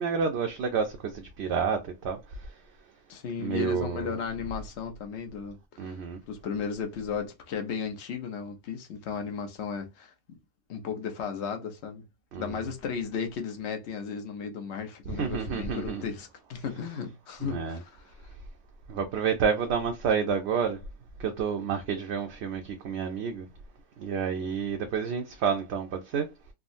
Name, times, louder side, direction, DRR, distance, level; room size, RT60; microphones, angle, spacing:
voice 1, 0.0-2.2 3.4-4.1 5.8-6.2 12.3-12.5 15.1-16.0 17.4-17.8 18.9-20.8 21.2-23.5 24.0-26.3, right 6 dB, 65° right, 0.8 m, -29 dB
voice 2, 3.1-6.0 6.3-10.1 10.7-12.0 12.4-18.1, left 6 dB, 65° left, 1.0 m, -35 dB
3.6 x 2.0 x 2.5 m
omnidirectional pair, 1.3 m